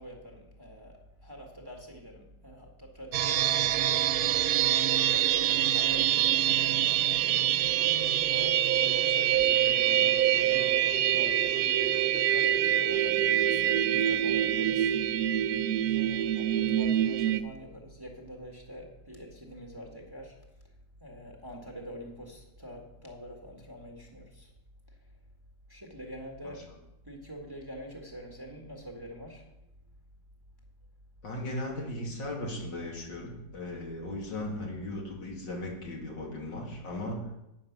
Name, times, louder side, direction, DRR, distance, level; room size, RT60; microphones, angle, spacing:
voice 1, 0.0-4.6 5.1-6.9 7.8-10.8 11.1-14.9 15.2-15.3 15.9-20.3 21.0-24.5 25.7-26.7 27.0-29.4 34.6-34.8, equal, 15° right, 0 dB, 1.7 m, -45 dB
sound 1, 3.1-17.4, right 11 dB, 70° right, 1.0 m, -25 dB
voice 2, 31.2-37.2, left 1 dB, 75° left, -2 dB, 3.2 m, -37 dB
10.5 x 9.4 x 6.0 m, 0.90 s
omnidirectional pair, 2.0 m